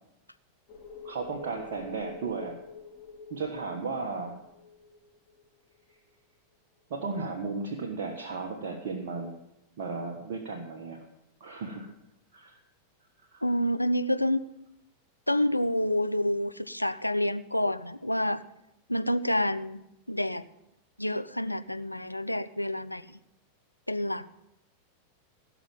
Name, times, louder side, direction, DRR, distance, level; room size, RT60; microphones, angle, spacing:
sound 1, 0.7-5.9 6.2-6.3, left 5 dB, 30° left, 4.0 m, -48 dB
voice 1, 1.0-2.6 3.3-4.4 6.9-9.3 9.8-11.0 11.4-11.9 12.3-12.6 13.3-13.4, right 4 dB, 55° right, 1 dB, 1.4 m, -35 dB
voice 2, 13.4-14.4 15.3-18.4 18.9-20.4 21.0-23.2 23.9-24.3, left 1 dB, 90° left, 12 dB, 0.5 m, -28 dB
16.5 x 6.1 x 8.7 m, 0.86 s
figure-of-eight pair, 90°, 0 cm